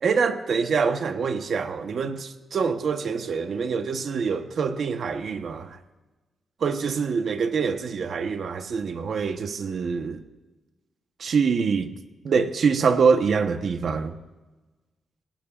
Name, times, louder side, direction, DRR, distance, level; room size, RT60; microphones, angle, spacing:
voice 1, 0.0-5.8 6.6-10.2 11.2-11.9 12.2-14.1, right 5 dB, 60° right, 1.0 m, -25 dB
26.5 x 17.5 x 2.5 m
cardioid pair, 115°, 0 cm